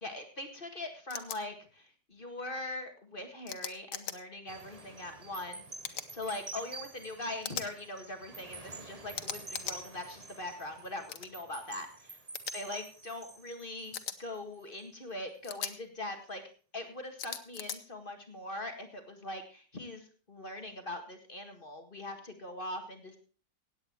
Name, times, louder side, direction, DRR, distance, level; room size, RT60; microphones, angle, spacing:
voice 1, 0.0-12.2 12.5-16.4 16.7-23.2, left 2 dB, 30° left, 5 dB, 2.0 m, -42 dB
sound 1, 1.1-1.4 3.5-4.2 5.8-6.1 7.4-7.7 9.1-9.8 11.1-11.3 12.3-12.5 13.9-14.2 15.4-15.7 17.2-17.8, left 8 dB, 85° left, 1.7 m, -39 dB
sound 2, 4.5-15.0 15.5-15.7, right 3 dB, 25° right, 1.2 m, -48 dB
17.0 x 9.1 x 4.5 m, 0.38 s
omnidirectional pair, 1.8 m